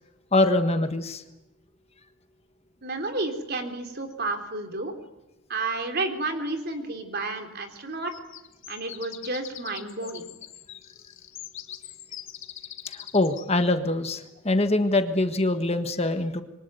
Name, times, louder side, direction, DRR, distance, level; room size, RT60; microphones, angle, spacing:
voice 1, 0.3-1.2 12.9-16.4, left 2 dB, 30° left, 8 dB, 1.4 m, -24 dB
voice 2, 2.8-4.9 5.5-8.1 8.7-10.3, right 2 dB, 45° right, 5 dB, 3.8 m, -31 dB
sound 1, 8.1-13.5, left 11 dB, 60° left, 2.2 m, -43 dB
27.0 x 23.5 x 9.4 m, 1.0 s
head